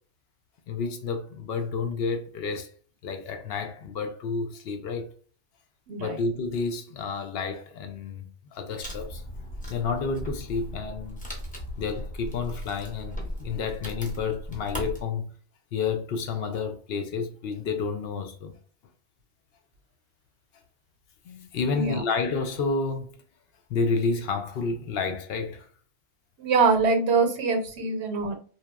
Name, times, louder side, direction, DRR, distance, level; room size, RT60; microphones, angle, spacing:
voice 1, 0.7-2.7 3.0-5.1 6.0-9.2 9.7-11.2 11.8-15.3 15.7-18.5 21.2-23.1 23.7-25.7, left 4 dB, 70° left, 0.8 m, -30 dB
voice 2, 5.9-6.2 21.7-22.0 26.4-28.3, right 4 dB, 85° right, 1.0 m, -24 dB
Wood, 8.8-15.0, equal, 10° left, 0.6 m, -37 dB
2.9 x 2.2 x 2.2 m
omnidirectional pair, 1.1 m